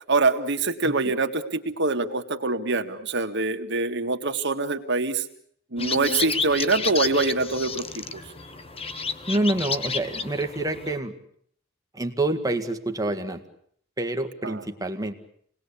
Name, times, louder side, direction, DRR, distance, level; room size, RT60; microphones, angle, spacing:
voice 1, 0.1-5.2 5.7-8.0 14.4-14.6, right 3 dB, 60° right, 5 dB, 2.1 m, -24 dB
sound 1, 5.8-11.0, left 5 dB, 30° left, 1.4 m, -31 dB
voice 2, 9.3-11.1 11.9-13.4 14.0-15.1, right 2 dB, 20° right, 5 dB, 2.0 m, -27 dB
28.5 x 20.0 x 8.6 m, 0.65 s
head